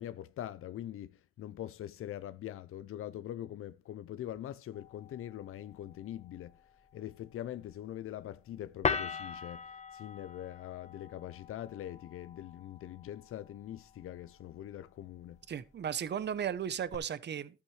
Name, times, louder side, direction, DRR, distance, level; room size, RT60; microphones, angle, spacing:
voice 1, 0.0-6.6 6.9-15.4, left 12 dB, 90° left, 0.6 m, -43 dB
sound 1, 4.7-16.9, left 5 dB, 30° left, 1.2 m, -43 dB
voice 2, 15.5-17.6, right 8 dB, 55° right, 0.8 m, -35 dB
13.0 x 8.4 x 3.2 m
wide cardioid pair, 120°, 21 cm